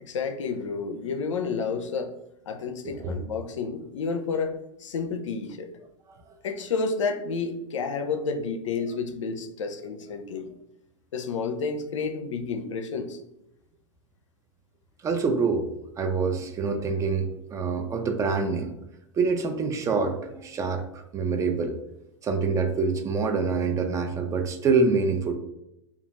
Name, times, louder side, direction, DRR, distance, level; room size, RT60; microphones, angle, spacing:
voice 1, 0.0-2.1 2.5-5.7 6.4-10.5 11.1-13.2, left 5 dB, 75° left, 6 dB, 0.4 m, -30 dB
voice 2, 2.8-3.2 15.0-15.7 16.0-18.7 19.2-21.8 22.2-25.3, right 4 dB, 20° right, 6 dB, 0.3 m, -26 dB
2.3 x 2.3 x 3.0 m, 0.86 s
hypercardioid pair, 95°, 16 cm